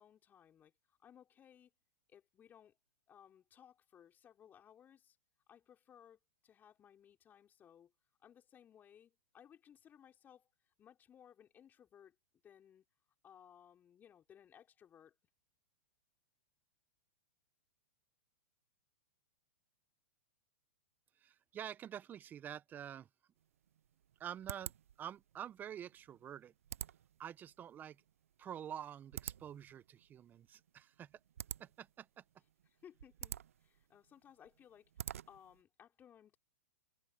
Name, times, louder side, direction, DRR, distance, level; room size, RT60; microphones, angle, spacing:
voice 1, 0.0-1.7 2.1-2.8 3.1-5.2 5.5-7.9 8.2-12.2 12.4-12.8 13.2-15.2 32.7-36.4, left 9 dB, 25° left, 5.5 m, -62 dB
voice 2, 21.2-23.1 24.2-24.7 25.0-26.5 27.2-28.0 28.4-31.2 31.6-32.2, right 9 dB, 25° right, 1.0 m, -48 dB
sound 1, 23.4-35.6, right 10 dB, 75° right, 0.7 m, -50 dB
hypercardioid pair, 115°, 8 cm